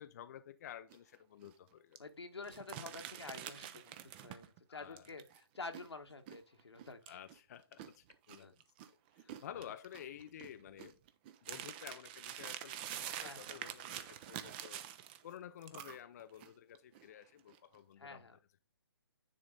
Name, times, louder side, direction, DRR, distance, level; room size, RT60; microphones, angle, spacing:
voice 1, 0.0-2.0 4.7-5.1 7.1-8.6 9.2-11.0 11.4-14.8 15.2-18.3, left 10 dB, 40° left, 0.5 m, -52 dB
sound 1, 0.9-1.2 1.4-1.5 2.0-2.1 2.4-4.6 5.0-8.9 9.2-15.3 15.6-16.5 16.7-17.1 17.5-17.8, right 11 dB, 25° right, 0.6 m, -47 dB
voice 2, 2.0-7.2 8.4-8.5 9.2-9.4 13.2-13.6 18.0-18.4, left 3 dB, 90° left, 1.5 m, -49 dB
9.8 x 4.0 x 3.8 m
hypercardioid pair, 150°, 13 cm